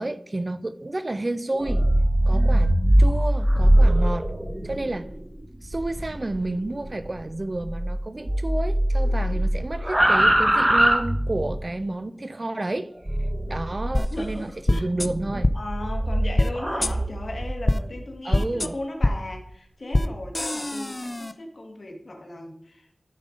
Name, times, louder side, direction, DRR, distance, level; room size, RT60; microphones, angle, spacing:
voice 1, 0.0-1.8 2.3-4.3 4.6-5.1 5.6-12.9 13.5-15.5 18.2-18.7, right 2 dB, 40° right, 0.5 m, -30 dB
sound 1, 1.5-8.0 8.2-11.7 13.1-14.3 15.0-17.6, right 1 dB, 15° right, 0.9 m, -22 dB
sound 2, 13.9-14.0 14.7-15.1 15.4-15.5 16.4-16.5 16.8-16.9 17.7-17.8 18.3-18.7 19.0-19.1 19.9-20.1 20.3-21.3, left 1 dB, 30° left, 0.4 m, -22 dB
voice 2, 14.1-14.9 15.5-22.9, left 1 dB, 60° left, 1.5 m, -36 dB
13.5 x 5.1 x 3.8 m
wide cardioid pair, 70°, 0 cm